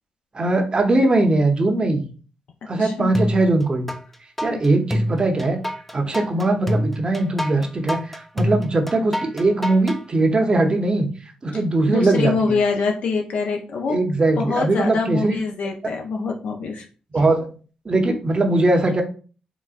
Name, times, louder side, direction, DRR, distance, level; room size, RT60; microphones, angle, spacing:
voice 1, 0.3-2.1 2.7-3.9 4.4-5.6 5.9-11.1 11.4-12.6 13.9-15.4 15.6-15.7 17.1-17.5 17.8-19.0, right 2 dB, 35° right, 4 dB, 0.7 m, -20 dB
voice 2, 2.8-3.1 11.8-14.0 14.4-16.8, left 4 dB, 70° left, 2 dB, 0.4 m, -24 dB
sound 1, 3.1-4.0 4.4-10.0, equal, 10° left, 0.4 m, -26 dB
3.8 x 2.1 x 2.4 m, 0.38 s
cardioid pair, 60°, 2 cm